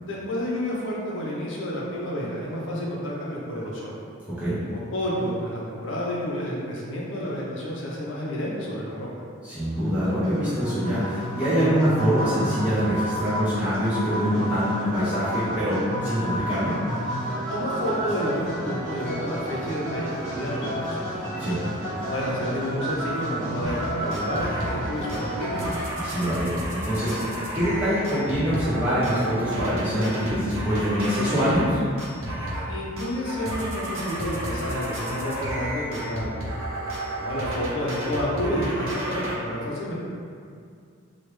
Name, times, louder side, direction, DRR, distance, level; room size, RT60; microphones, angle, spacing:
voice 1, 0.0-4.0 4.6-9.1 17.5-21.1 21.8-25.5 32.7-36.5 37.2-39.9, equal, 60° left, -4 dB, 0.7 m, -30 dB
voice 2, 9.4-16.7 21.4-21.6 25.9-27.2 27.5-31.8, equal, 5° right, -13 dB, 0.7 m, -24 dB
sound 1, 9.6-25.8, equal, 60° right, 1.1 m, -31 dB
sound 2, 23.6-23.8 24.1-24.8 25.1-31.7 32.0-32.7 33.0-39.4, right 1 dB, 75° right, 0.7 m, -32 dB
3.2 x 2.4 x 3.1 m, 2.2 s
head